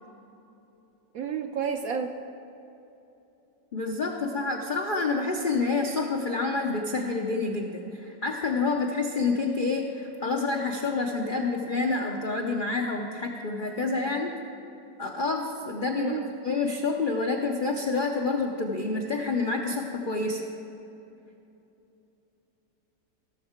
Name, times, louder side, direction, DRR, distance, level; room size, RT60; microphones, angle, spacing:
voice 1, 1.1-2.1 15.9-16.3, right 6 dB, 70° right, 5 dB, 0.8 m, -31 dB
voice 2, 3.7-14.3 15.0-16.2 16.4-20.4, left 3 dB, 65° left, 1 dB, 0.5 m, -28 dB
16.5 x 6.5 x 4.4 m, 2.9 s
omnidirectional pair, 1.9 m